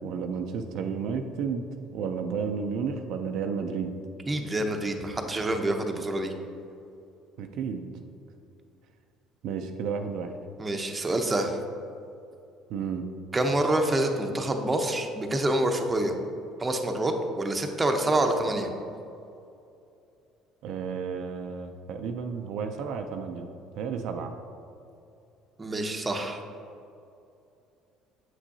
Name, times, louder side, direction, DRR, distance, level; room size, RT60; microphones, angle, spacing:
voice 1, 0.0-1.7 1.9-3.9 7.4-7.9 9.4-10.3 12.7-13.1 20.6-23.5 23.8-24.3, right 6 dB, 70° right, 5 dB, 0.4 m, -32 dB
voice 2, 4.3-6.3 10.6-11.6 13.3-16.1 16.6-18.7 25.6-26.4, right 1 dB, 20° right, 4 dB, 0.7 m, -27 dB
7.4 x 6.0 x 2.7 m, 2.6 s
supercardioid pair, 85°, 0 cm